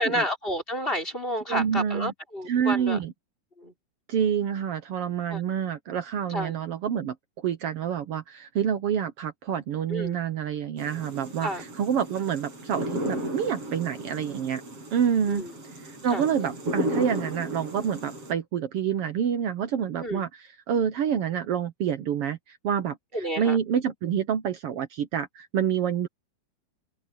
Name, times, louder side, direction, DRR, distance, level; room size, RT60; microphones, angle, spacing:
voice 1, 0.0-3.0 3.6-3.7 5.3-5.4 6.3-6.5 9.9-10.2 11.4-11.6 15.3-15.5 16.1-16.2 20.0-20.2 23.1-23.6, equal, 15° left, 4.2 m, -30 dB
voice 2, 1.5-2.1 2.4-3.1 4.1-7.1 7.4-14.6 14.9-15.4 15.8-26.1, right 8 dB, 85° right, 1.3 m, -27 dB
sound 1, 10.8-18.3, right 1 dB, 40° right, 8.2 m, -34 dB
open air
omnidirectional pair, 4.2 m